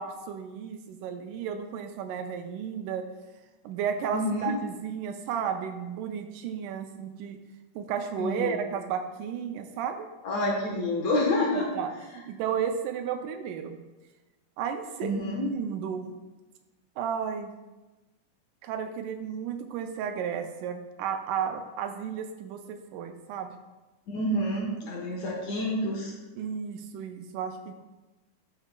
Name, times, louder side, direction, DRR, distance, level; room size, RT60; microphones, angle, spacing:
voice 1, 0.0-3.1 3.6-7.4 7.7-10.1 11.5-13.8 14.6-16.1 17.0-17.5 18.6-23.5 26.4-27.8, right 7 dB, 85° right, 6 dB, 1.8 m, -33 dB
voice 2, 4.1-4.5 8.2-8.6 10.2-11.7 15.0-15.4 24.1-26.1, left 1 dB, 65° left, -3 dB, 2.1 m, -28 dB
12.5 x 5.7 x 2.2 m, 1.1 s
omnidirectional pair, 4.1 m